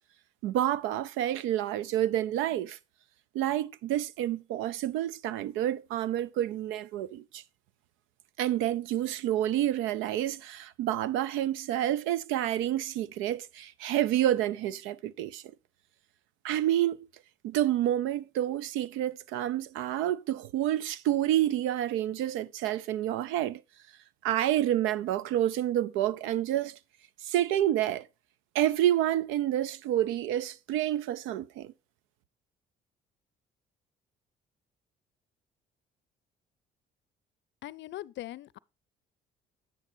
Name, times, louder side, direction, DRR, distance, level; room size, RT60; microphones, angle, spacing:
voice 1, 0.4-2.8 3.3-7.4 8.4-15.4 16.4-17.1 17.4-23.6 24.2-26.8 27.2-28.1 28.5-31.7, right 12 dB, 80° right, 0.6 m, -29 dB
voice 2, 37.6-38.6, left 14 dB, 65° left, 0.5 m, -41 dB
9.7 x 8.8 x 2.7 m
supercardioid pair, 65°, 20 cm